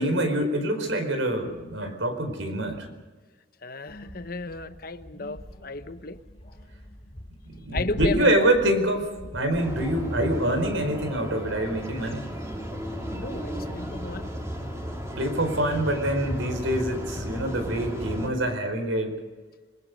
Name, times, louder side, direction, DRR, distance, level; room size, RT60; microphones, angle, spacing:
voice 1, 0.0-2.9 7.6-12.3 15.2-19.2, right 1 dB, 75° right, 7 dB, 4.7 m, -26 dB
voice 2, 3.6-6.2 7.7-8.5 13.1-14.3, left 2 dB, 50° left, 11 dB, 1.1 m, -34 dB
sound 1, 3.9-17.6, equal, 30° left, 3.3 m, -41 dB
sound 2, 9.5-18.3, equal, 15° right, 3.0 m, -35 dB
27.5 x 21.5 x 5.3 m, 1.3 s
head